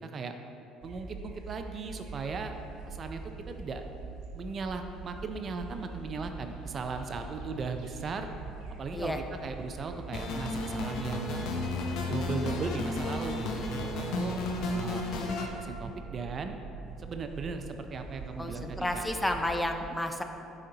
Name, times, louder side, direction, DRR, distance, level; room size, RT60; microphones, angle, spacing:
voice 1, 0.0-0.3 0.8-2.5 2.9-3.2 3.5-3.8 4.3-8.3 8.8-11.4 12.0-15.0 15.4-16.6 17.0-19.0, right 4 dB, 45° right, 6 dB, 0.4 m, -37 dB
sound 1, 0.8-19.7, right 3 dB, 80° right, 1.3 m, -44 dB
sound 2, 10.1-15.5, left 2 dB, 70° left, 0.7 m, -33 dB
voice 2, 18.4-20.2, left 1 dB, 10° left, 5 dB, 0.5 m, -31 dB
6.4 x 4.3 x 3.9 m, 2.8 s
supercardioid pair, 80°, 0 cm